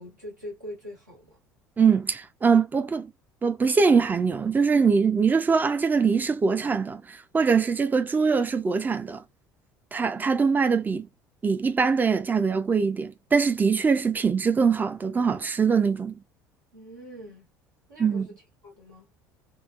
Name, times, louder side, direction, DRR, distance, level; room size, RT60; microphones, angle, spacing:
voice 1, 0.0-1.4 16.7-17.5 17.9-18.3 18.6-19.1, equal, 85° right, 1.4 m, -42 dB
voice 2, 1.8-3.1 3.4-9.2 9.9-11.1 11.4-16.1 18.0-18.3, right 5 dB, 20° right, 0.4 m, -23 dB
2.9 x 2.0 x 2.3 m
figure-of-eight pair, 60°, 10 cm